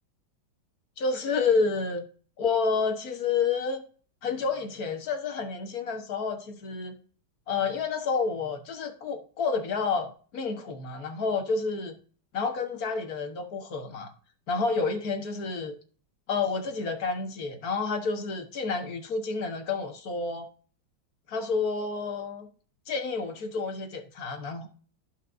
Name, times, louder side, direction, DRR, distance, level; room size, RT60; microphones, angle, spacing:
voice 1, 1.0-2.0 2.4-3.8 4.2-7.0 7.5-11.9 12.3-14.1 14.5-15.7 16.3-20.5 21.3-22.5 22.9-24.7, left 4 dB, 50° left, 1.5 m, -29 dB
14.5 x 5.3 x 2.6 m
omnidirectional pair, 2.2 m